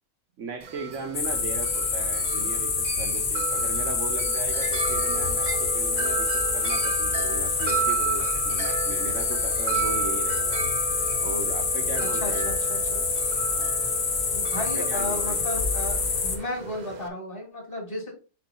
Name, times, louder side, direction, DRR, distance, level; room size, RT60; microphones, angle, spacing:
voice 1, 0.4-10.6 11.2-12.5 12.9-13.0 13.5-13.7 14.5-15.4, right 4 dB, 75° right, 6 dB, 1.5 m, -37 dB
Wind chime, 0.6-17.1, right 6 dB, 40° right, 0.7 m, -33 dB
Singing Crickets, 1.1-16.4, left 4 dB, 75° left, 1.6 m, -26 dB
voice 2, 12.2-13.0 14.3-18.1, left 1 dB, 45° left, 0 dB, 2.8 m, -34 dB
5.9 x 4.3 x 4.2 m, 0.33 s
omnidirectional pair, 1.3 m